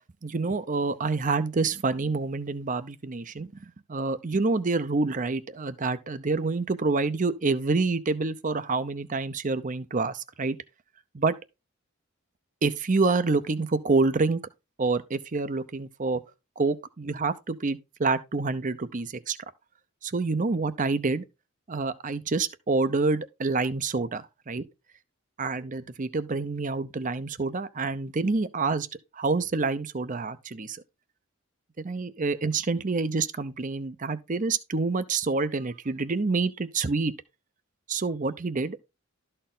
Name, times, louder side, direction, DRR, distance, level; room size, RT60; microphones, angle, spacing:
voice 1, 0.2-3.5 3.9-10.6 11.1-11.3 12.6-14.4 14.8-16.2 16.6-19.4 20.0-21.2 21.7-24.6 25.4-28.9 29.1-30.8 31.8-37.1 37.9-38.8, right 3 dB, 40° right, 0.7 m, -27 dB
12.5 x 4.4 x 3.8 m
head